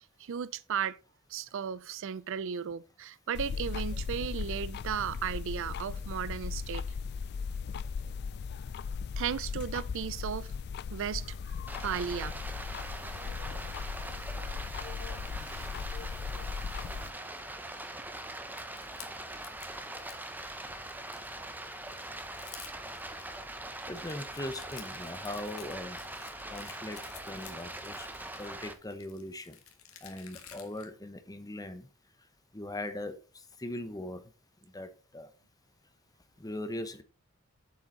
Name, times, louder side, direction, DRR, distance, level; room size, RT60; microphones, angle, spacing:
voice 1, 0.2-1.0 1.3-6.9 9.2-10.5 10.9-11.5 11.8-12.4, right 8 dB, 65° right, 0.4 m, -35 dB
sound 1, 3.3-17.1, left 5 dB, 50° left, 0.3 m, -38 dB
Stream, 11.7-28.7, right 1 dB, 10° right, 0.9 m, -42 dB
voice 2, 15.3-16.1 21.9-22.0 23.9-26.0 26.5-28.1 28.4-29.5 30.0-31.9 32.5-33.2 33.6-34.2 34.6-35.3 36.4-37.0, left 1 dB, 15° left, 1.0 m, -40 dB
sound 2, 18.6-20.2 20.7-21.5 22.0-22.1 22.3-23.3 23.8-30.9, left 9 dB, 75° left, 1.8 m, -52 dB
7.8 x 7.2 x 3.9 m
head